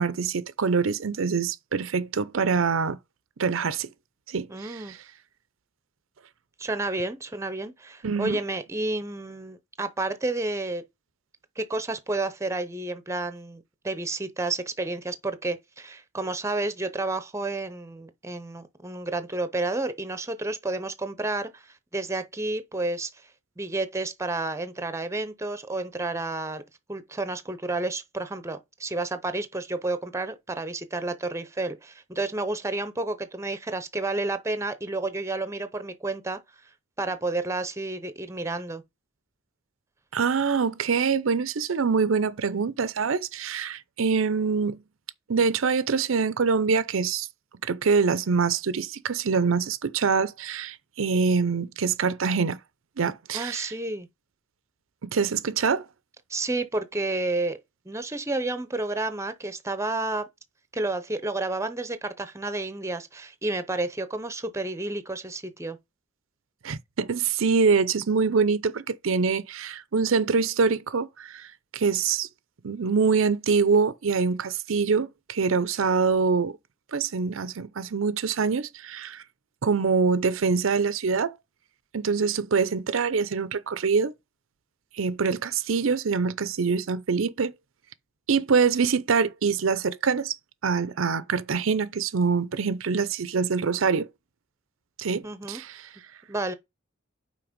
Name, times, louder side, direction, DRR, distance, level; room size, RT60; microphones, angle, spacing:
voice 1, 0.0-3.0 3.4-3.9 4.3-5.0 8.0-8.4 40.1-44.8 45.3-47.3 47.6-52.6 53.0-53.7 55.0-55.8 66.6-72.3 72.6-76.6 76.9-79.2 79.6-81.4 81.9-84.1 84.9-87.5 88.3-90.3 90.6-94.1 95.0-95.9, right 5 dB, 75° right, 0.6 m, -25 dB
voice 2, 4.5-5.0 6.6-10.8 11.6-21.6 21.9-23.1 23.6-26.6 26.9-36.4 37.0-38.8 53.3-54.1 56.3-57.6 57.9-60.2 60.7-65.8 95.2-95.6 96.3-96.5, right 2 dB, 15° right, 0.7 m, -30 dB
5.9 x 4.5 x 5.1 m
head